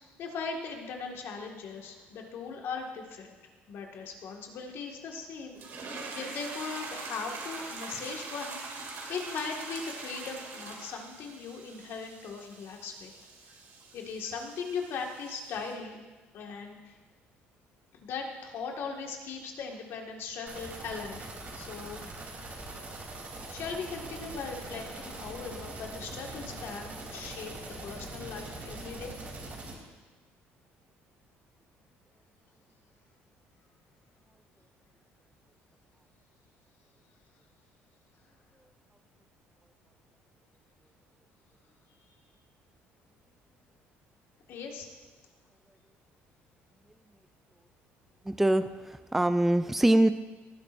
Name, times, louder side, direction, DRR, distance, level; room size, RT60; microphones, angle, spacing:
voice 1, 0.2-3.3 3.7-13.1 13.9-16.0 16.3-16.9 18.0-21.2 21.6-22.0 22.3-22.4 23.5-27.5 27.8-29.1 44.5-44.9, left 5 dB, 65° left, 1 dB, 1.8 m, -39 dB
sound 1, 5.5-15.7, right 3 dB, 60° right, 2.5 m, -43 dB
sound 2, 20.5-29.7, right 2 dB, 40° right, 3.2 m, -42 dB
voice 2, 48.2-50.1, right 1 dB, 5° right, 10 dB, 0.4 m, -24 dB
18.0 x 10.5 x 2.6 m, 1.3 s
cardioid pair, 115°, 5 cm